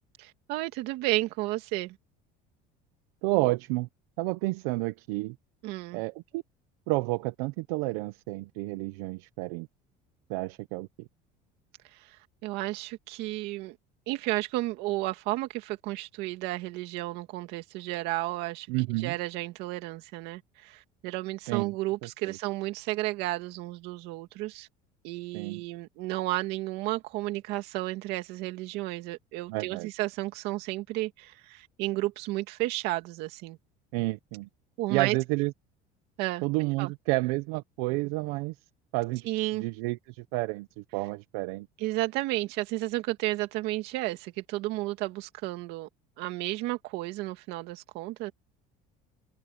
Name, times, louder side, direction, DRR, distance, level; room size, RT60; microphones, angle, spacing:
voice 1, 0.2-2.0 5.6-6.0 11.8-13.8 14.1-18.7 19.0-24.7 25.0-33.6 34.8-35.2 36.2-36.4 36.8-36.9 39.2-39.7 41.8-45.9 46.2-48.3, right 18 dB, 60° right, 2.4 m, -32 dB
voice 2, 3.2-3.9 4.2-5.3 5.9-6.4 6.9-9.7 10.3-11.1 18.7-19.2 21.5-21.7 22.3-22.4 25.3-25.6 29.5-29.9 33.9-34.5 34.9-35.5 36.4-38.5 38.9-39.3 39.5-41.7, right 23 dB, 90° right, 0.8 m, -30 dB
cardioid pair, 175°, 19 cm